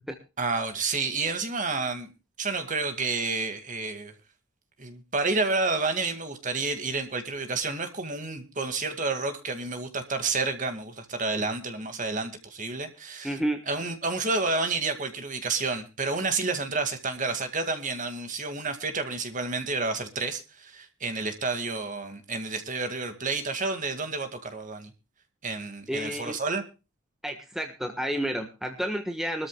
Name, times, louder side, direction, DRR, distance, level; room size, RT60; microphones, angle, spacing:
voice 1, 0.4-2.1 2.4-4.1 4.8-13.4 13.7-24.9 25.4-26.6, right 3 dB, 35° right, 2.2 m, -30 dB
voice 2, 13.2-13.6 25.9-26.4 27.2-29.5, equal, ahead, 1.4 m, -30 dB
24.0 x 13.5 x 2.3 m
head